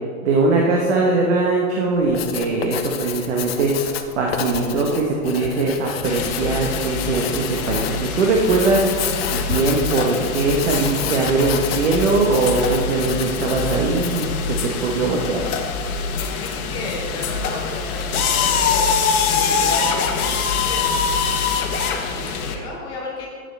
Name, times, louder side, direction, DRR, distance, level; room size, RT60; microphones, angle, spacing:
voice 1, 0.2-3.7 4.2-8.8 9.3-14.6 14.8-15.4, right 3 dB, 50° right, -1 dB, 1.2 m, -20 dB
Writing, 2.0-14.4, left 8 dB, 45° left, 0.6 m, -30 dB
sound 1, 6.0-22.5, left 5 dB, 80° left, 1.2 m, -24 dB
voice 2, 16.1-20.9 21.8-23.3, left 2 dB, 10° left, -3 dB, 0.7 m, -33 dB
11.0 x 7.6 x 3.4 m, 2.1 s
supercardioid pair, 180°, 43 cm